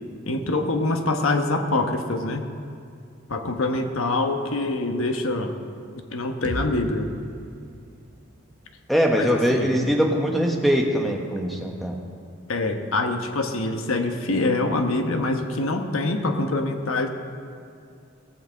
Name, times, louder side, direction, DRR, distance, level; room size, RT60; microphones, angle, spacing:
voice 1, 0.3-2.4 3.3-5.5 6.1-7.1 9.2-9.8 12.5-17.1, left 2 dB, 80° left, 5 dB, 1.1 m, -25 dB
sound 1, 6.4-10.3, equal, 40° right, 1.1 m, -39 dB
voice 2, 8.9-12.0, equal, ahead, 0 dB, 1.1 m, -22 dB
17.5 x 6.0 x 7.7 m, 2.4 s
head